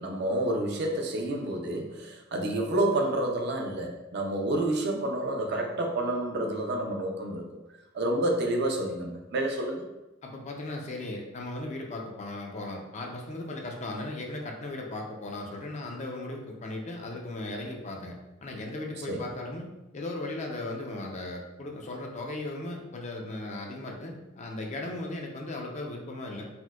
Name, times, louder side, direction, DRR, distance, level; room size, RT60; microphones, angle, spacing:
voice 1, 0.0-7.5 7.9-9.8 19.1-19.3, right 1 dB, 55° right, 2 dB, 0.4 m, -29 dB
voice 2, 10.2-19.7 19.9-26.5, left 2 dB, 35° left, 1 dB, 0.4 m, -37 dB
4.2 x 2.1 x 2.3 m, 0.99 s
head